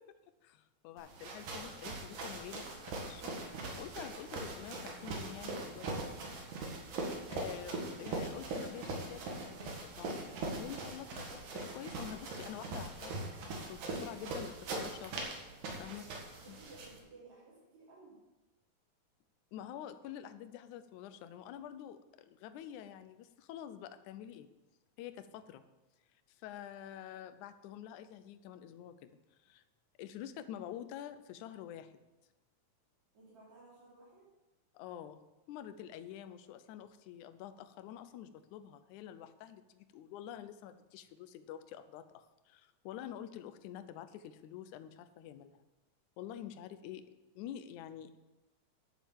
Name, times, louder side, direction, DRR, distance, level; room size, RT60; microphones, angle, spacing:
voice 1, 0.4-3.4 3.8-6.1 7.3-13.2 13.6-15.4 15.8-16.1 16.5-16.6 19.5-24.5 25.0-25.6 26.3-29.1 29.4-29.6 30.0-31.9 34.7-35.2 35.5-45.6 46.2-47.0 47.4-48.2, left 10 dB, 80° left, 11 dB, 2.1 m, -47 dB
sound 1, 1.0-17.0, right 2 dB, 85° right, 3.3 m, -41 dB
voice 2, 16.4-18.2 33.1-34.3, right 3 dB, 65° right, -8 dB, 4.4 m, -57 dB
10.5 x 7.3 x 7.2 m, 1.1 s
omnidirectional pair, 3.4 m